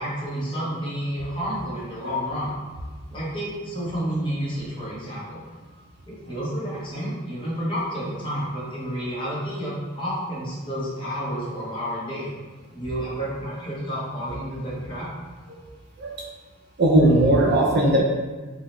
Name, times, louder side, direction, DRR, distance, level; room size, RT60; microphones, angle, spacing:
voice 1, 0.0-2.5 3.1-5.4 6.1-12.3 12.7-15.1, equal, 25° left, -8 dB, 1.0 m, -30 dB
voice 2, 16.8-18.0, right 1 dB, 55° right, -1 dB, 0.5 m, -18 dB
3.6 x 2.0 x 3.1 m, 1.3 s
head